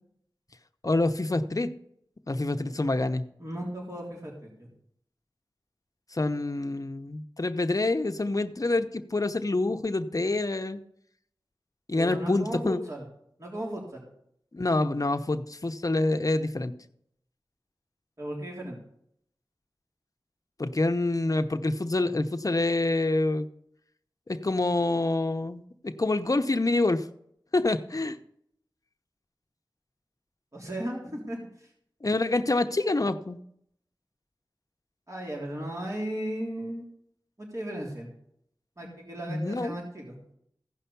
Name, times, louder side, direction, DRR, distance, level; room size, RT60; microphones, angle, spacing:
voice 1, 0.8-1.7 2.3-3.2 6.1-10.8 11.9-12.8 14.5-16.7 20.6-23.5 24.3-27.0 27.5-28.2 32.0-33.4 38.8-39.0 39.3-39.7, left 2 dB, 45° left, 8 dB, 0.8 m, -27 dB
voice 2, 3.4-4.7 11.9-13.0 13.4-14.1 18.2-18.8 30.5-31.7 35.1-36.8 37.4-38.1 38.8-40.2, right 1 dB, 40° right, -3 dB, 3.5 m, -36 dB
15.5 x 5.7 x 6.9 m, 0.71 s
wide cardioid pair, 60°, 8 cm